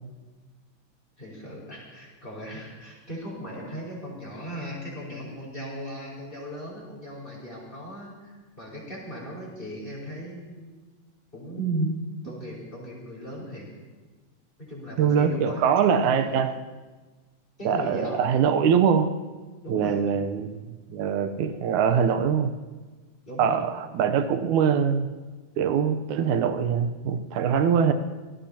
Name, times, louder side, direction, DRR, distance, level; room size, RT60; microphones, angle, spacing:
voice 1, 1.2-10.7 11.3-11.9 12.2-13.7 14.6-16.4 17.6-18.2 19.6-20.0 23.3-23.6, right 1 dB, 15° left, -3 dB, 5.3 m, -36 dB
voice 2, 15.0-16.5 17.7-19.1 19.7-22.5 23.4-25.1 25.6-27.9, right 7 dB, 90° right, 9 dB, 2.3 m, -23 dB
26.5 x 18.0 x 2.9 m, 1.3 s
omnidirectional pair, 3.3 m